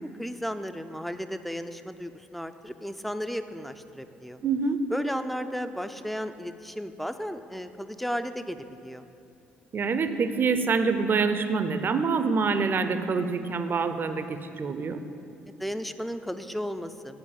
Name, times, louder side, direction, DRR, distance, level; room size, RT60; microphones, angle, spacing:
voice 1, 0.0-4.4 4.9-9.0 15.4-17.2, equal, ahead, 10 dB, 0.5 m, -34 dB
voice 2, 4.4-4.8 9.7-15.0, right 4 dB, 40° right, 9 dB, 0.6 m, -26 dB
8.9 x 4.7 x 7.1 m, 2.6 s
hypercardioid pair, 50°, 5 cm